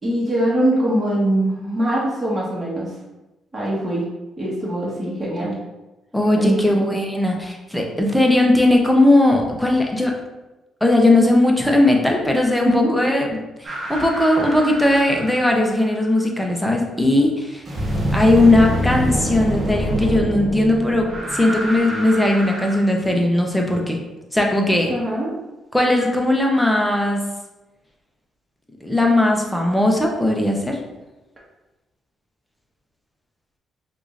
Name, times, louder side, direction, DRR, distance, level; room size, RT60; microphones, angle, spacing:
voice 1, 0.0-2.9 3.5-4.0 4.4-5.6 6.3-6.9 12.6-13.0 24.9-25.3, right 1 dB, 20° right, -6 dB, 1.2 m, -22 dB
voice 2, 6.1-10.1 10.8-17.6 18.1-24.0 24.3-24.9 25.7-27.2 28.8-30.8, left 1 dB, 5° left, 0 dB, 0.7 m, -18 dB
sound 1, 13.6-15.9 17.7-22.8, equal, 35° right, 1.0 m, -26 dB
4.8 x 2.6 x 2.5 m, 1.0 s
cardioid pair, 90°, 0 cm